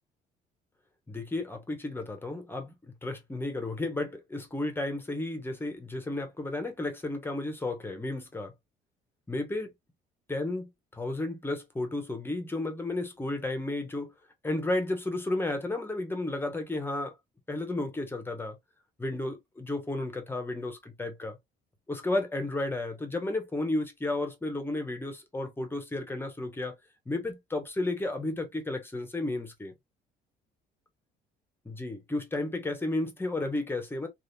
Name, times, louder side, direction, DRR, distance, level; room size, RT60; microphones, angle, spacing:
voice 1, 1.1-8.5 9.3-9.7 10.3-14.1 14.4-17.1 17.5-18.6 19.0-21.4 21.9-26.7 27.1-29.7 31.6-34.1, left 2 dB, 15° left, 1.0 m, -33 dB
3.3 x 2.5 x 2.7 m
cardioid pair, 110°, 17 cm